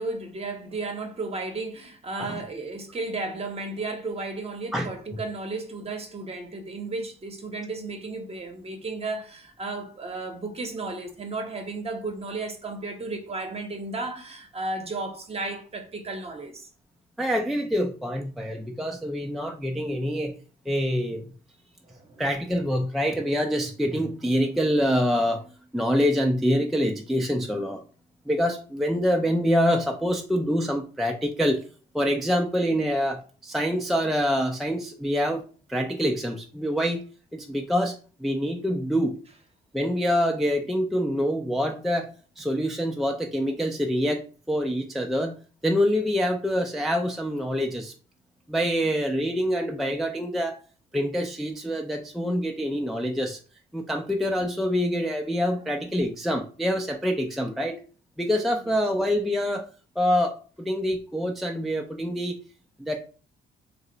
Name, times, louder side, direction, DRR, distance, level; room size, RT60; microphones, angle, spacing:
voice 1, 0.0-16.7 21.9-22.2 55.5-55.6 58.6-58.8, right 3 dB, 30° right, 0.8 m, -34 dB
voice 2, 17.2-20.3 20.7-21.2 22.2-25.5 25.7-27.8 28.3-31.6 31.9-35.4 35.7-37.0 37.3-39.2 39.7-45.4 45.6-47.9 48.5-50.6 50.9-53.4 53.7-57.8 58.2-59.7 60.0-62.4 62.8-63.0, equal, ahead, 0.3 m, -26 dB
2.8 x 2.0 x 3.8 m
cardioid pair, 90°, 20 cm